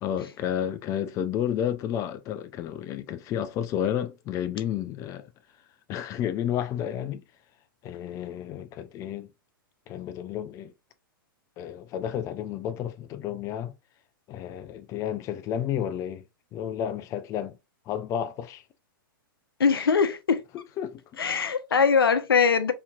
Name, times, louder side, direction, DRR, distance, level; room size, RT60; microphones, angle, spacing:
voice 1, 0.0-5.3 5.9-7.2 7.8-9.3 9.9-10.7 11.6-13.7 14.3-16.2 16.5-17.6 17.9-18.6 19.7-19.9 20.8-21.0, left 10 dB, 25° left, 0.4 m, -31 dB
voice 2, 19.6-20.4 21.2-22.7, left 6 dB, 90° left, 0.7 m, -22 dB
4.3 x 2.9 x 2.4 m
hypercardioid pair, 115°, 12 cm